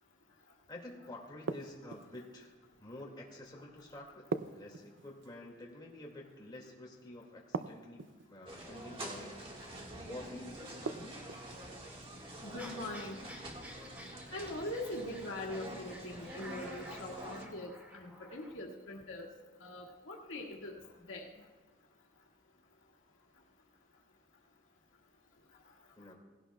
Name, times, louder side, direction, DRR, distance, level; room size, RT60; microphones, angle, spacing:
voice 1, 0.7-2.5 2.8-4.2 4.5-11.2 26.0-26.1, left 1 dB, 20° left, -2 dB, 2.2 m, -49 dB
sound 1, 1.5-2.3 4.3-5.4 7.5-8.3 10.9-11.5, right 4 dB, 65° right, 0.5 m, -39 dB
sound 2, 8.5-17.5, right 1 dB, 30° right, 1.7 m, -47 dB
voice 2, 12.4-13.2 14.3-19.3 19.6-20.8 21.1-21.2, left 1 dB, 90° left, -1 dB, 1.9 m, -42 dB
sound 3, 12.6-18.5, equal, 10° right, 1.9 m, -52 dB
18.0 x 17.0 x 2.3 m, 1.4 s
head